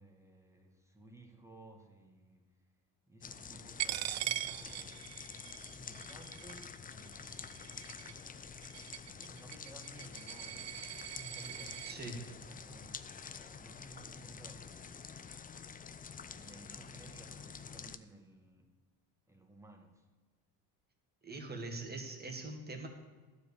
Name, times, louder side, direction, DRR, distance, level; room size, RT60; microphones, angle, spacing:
voice 1, 0.0-2.7 3.1-5.1 5.7-7.7 9.0-15.6 16.2-18.7 19.3-20.1, right 1 dB, 5° right, 3 dB, 1.8 m, -57 dB
sound 1, 3.2-18.0, left 6 dB, 20° left, 0.5 m, -48 dB
Coin (dropping), 3.8-11.9, right 13 dB, 40° right, 0.4 m, -42 dB
voice 2, 11.9-12.2 21.2-22.9, right 2 dB, 20° right, 2 dB, 2.3 m, -42 dB
12.0 x 4.9 x 8.6 m, 1.3 s
supercardioid pair, 85°, 42 cm